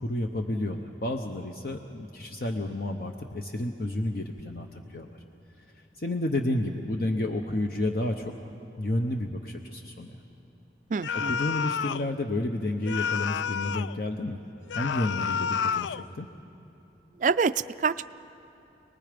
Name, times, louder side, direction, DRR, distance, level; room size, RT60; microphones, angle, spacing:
voice 1, 0.0-5.2 6.0-8.3 8.8-10.2 11.1-14.4 14.7-16.3, left 1 dB, 55° left, 4 dB, 0.8 m, -31 dB
voice 2, 10.9-11.3 17.2-18.1, right 5 dB, 45° right, 14 dB, 0.4 m, -26 dB
sound 1, 11.0-12.1 12.9-14.0 14.7-16.1, left 7 dB, 85° left, 0.4 m, -30 dB
27.0 x 20.0 x 5.2 m, 3.0 s
head